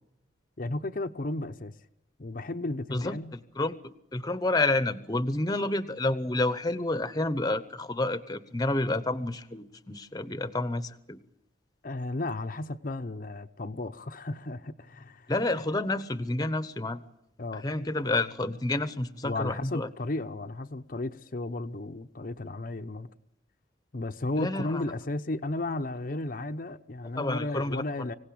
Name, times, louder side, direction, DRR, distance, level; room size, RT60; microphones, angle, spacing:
voice 1, 0.6-1.7 2.2-3.3 11.8-15.3 17.4-17.6 19.2-23.1 23.9-28.1, left 2 dB, 45° left, 0.8 m, -34 dB
voice 2, 2.9-3.8 4.1-11.2 15.3-17.0 17.6-19.9 24.4-24.8 27.1-27.8, left 2 dB, 20° left, 0.9 m, -29 dB
25.0 x 17.0 x 8.5 m
head